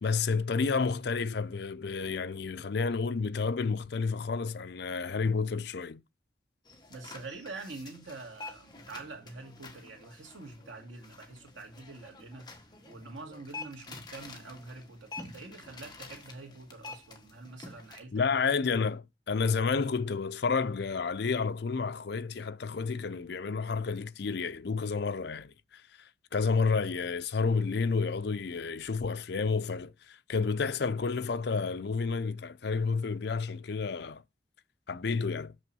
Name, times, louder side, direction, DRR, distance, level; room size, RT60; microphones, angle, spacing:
voice 1, 0.0-6.0 18.1-34.2 34.9-35.5, left 4 dB, 60° left, 0.5 m, -30 dB
sound 1, 6.7-18.0, left 3 dB, 20° left, 1.4 m, -48 dB
voice 2, 6.9-12.5 12.9-18.3, right 3 dB, 80° right, 2.3 m, -45 dB
6.4 x 6.1 x 7.4 m
head